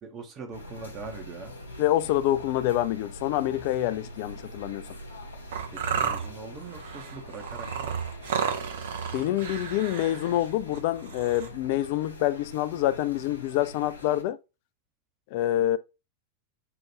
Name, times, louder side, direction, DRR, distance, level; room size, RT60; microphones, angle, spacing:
voice 1, 0.0-1.5 5.7-8.0, right 4 dB, 30° right, 1.0 m, -42 dB
sound 1, 0.5-14.2, left 1 dB, 80° left, 0.9 m, -44 dB
voice 2, 1.8-4.9 9.1-14.4 15.3-15.8, left 13 dB, 50° left, 0.3 m, -26 dB
sound 2, 5.5-11.5, right 7 dB, 60° right, 0.8 m, -32 dB
5.8 x 2.5 x 2.9 m
figure-of-eight pair, 90°, 0 cm